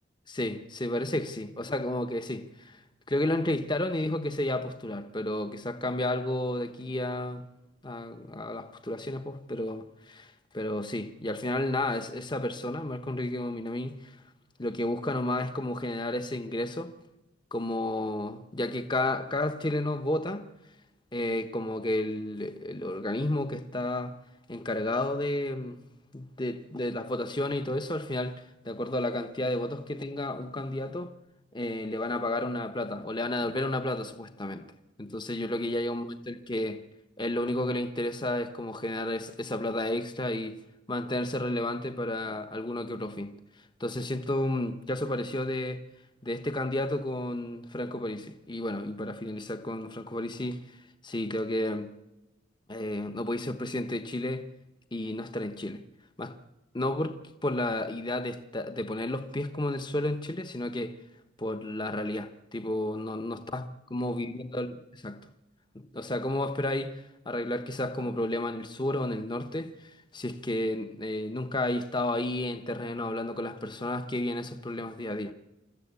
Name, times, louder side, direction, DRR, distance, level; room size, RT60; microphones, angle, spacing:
voice 1, 0.3-2.8 3.1-7.4 7.8-14.2 14.6-16.9 17.5-20.5 21.1-24.2 24.5-25.8 26.1-31.1 31.5-34.7 35.0-36.8 37.2-40.6 40.9-43.4 43.8-45.8 46.2-50.8 51.0-51.9 52.7-54.5 54.9-55.8 56.2-56.3 56.7-57.2 57.4-61.0 61.4-63.6 63.9-65.3 65.7-75.3, left 1 dB, 25° left, 1.2 m, -32 dB
28.0 x 14.0 x 8.3 m
head